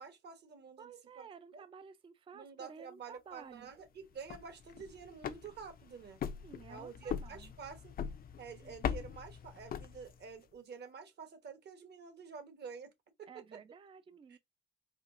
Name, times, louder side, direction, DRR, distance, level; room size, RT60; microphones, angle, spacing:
voice 1, 0.0-1.3 1.5-1.6 2.3-6.2 6.7-7.9 8.4-12.9 13.2-13.3, right 6 dB, 55° right, 1.1 m, -49 dB
voice 2, 0.8-3.7 6.4-7.6 8.6-8.7 13.3-14.4, right 6 dB, 25° right, 0.4 m, -53 dB
sound 1, 4.1-10.4, left 8 dB, 50° left, 0.5 m, -42 dB
4.3 x 2.5 x 2.4 m
cardioid pair, 90°, 20 cm